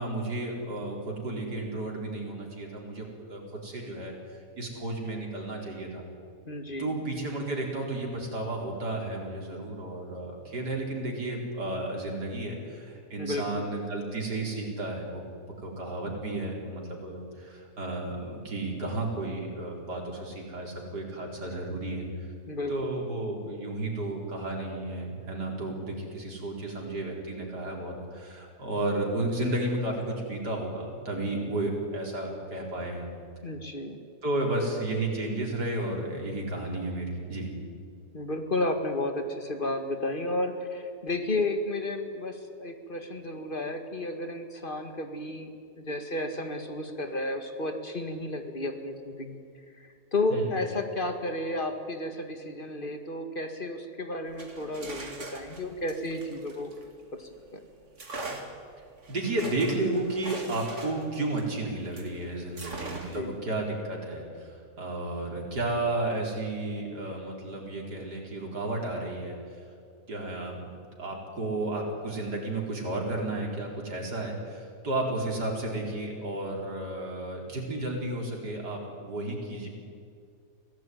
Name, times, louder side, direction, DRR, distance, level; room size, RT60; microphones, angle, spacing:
voice 1, 0.0-4.1 4.6-6.0 6.8-15.2 15.6-22.0 22.7-33.1 34.2-37.5 50.3-50.5 59.1-69.4 70.1-79.7, right 2 dB, 85° right, 0 dB, 5.0 m, -32 dB
voice 2, 6.4-6.9 13.2-13.7 22.5-22.7 33.4-34.0 38.1-45.5 45.8-49.4 49.8-56.7 57.1-57.6 62.9-63.3, left 2 dB, 30° left, 6 dB, 2.1 m, -32 dB
sound 1, 54.3-57.3 58.0-62.1 62.6-63.3, right 2 dB, 45° right, 2.6 m, -42 dB
25.0 x 17.0 x 9.4 m, 2.3 s
omnidirectional pair, 1.7 m